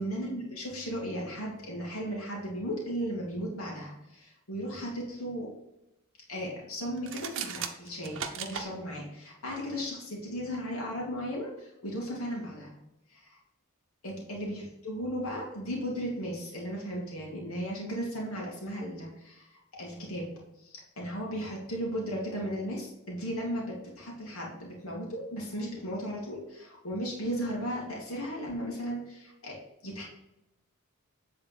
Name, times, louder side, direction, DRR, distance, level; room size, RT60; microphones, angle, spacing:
voice 1, 0.0-5.5 6.3-12.7 13.1-13.4 14.0-20.3 20.6-29.6 29.8-30.0, equal, 80° left, -3 dB, 2.3 m, -36 dB
sound 1, 7.0-8.7, right 7 dB, 60° right, 0.8 m, -36 dB
9.0 x 4.2 x 5.2 m, 0.89 s
head